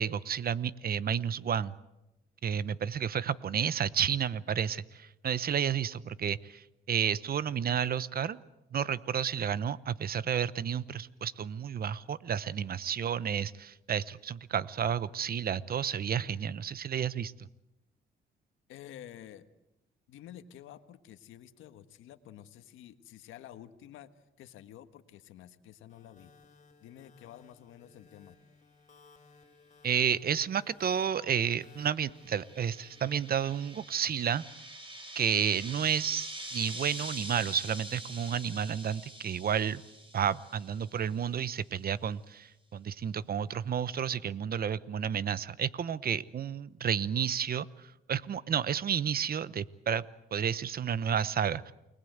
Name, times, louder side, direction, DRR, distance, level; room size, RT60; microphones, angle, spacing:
voice 1, 0.0-1.7 2.4-8.4 8.7-17.3 29.8-34.4 35.1-39.8 40.1-50.0 50.3-51.7, right 8 dB, 50° right, 17 dB, 1.0 m, -31 dB
voice 2, 18.7-19.5 20.1-24.1 24.4-26.3 26.8-28.4, left 11 dB, 90° left, 10 dB, 1.5 m, -50 dB
sound 1, 25.9-34.1, left 4 dB, 35° left, 4.5 m, -60 dB
sound 2, 31.5-41.1, right 1 dB, 25° right, 4.6 m, -45 dB
29.0 x 20.5 x 8.0 m, 0.96 s
cardioid pair, 90°, 20 cm